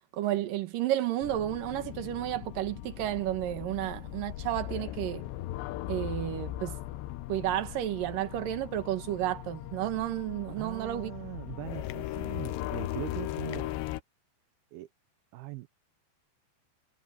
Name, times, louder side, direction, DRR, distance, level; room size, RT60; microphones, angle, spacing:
voice 1, 0.1-5.3 5.9-6.8 7.3-11.1, right 13 dB, 60° right, 2.6 m, -32 dB
sound 1, 1.2-14.0, left 15 dB, 80° left, 2.9 m, -38 dB
sound 2, 3.8-13.7, left 8 dB, 60° left, 3.5 m, -54 dB
voice 2, 10.5-13.8 14.7-14.9 15.3-15.7, right 18 dB, 80° right, 2.3 m, -41 dB
omnidirectional pair, 5.2 m